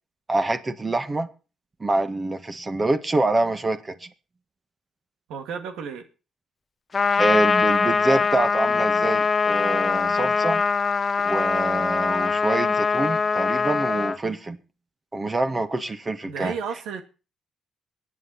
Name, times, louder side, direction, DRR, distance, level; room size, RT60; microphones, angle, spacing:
voice 1, 0.3-1.3 1.8-4.1 7.2-10.6 11.2-14.6 15.1-16.5, right 2 dB, 25° right, 1.7 m, -26 dB
voice 2, 5.3-6.1 16.3-17.0, right 6 dB, 85° right, 2.2 m, -32 dB
Trumpet, 6.9-14.2, left 5 dB, 35° left, 1.0 m, -22 dB
23.5 x 8.6 x 4.3 m
cardioid pair, 90°, 0 cm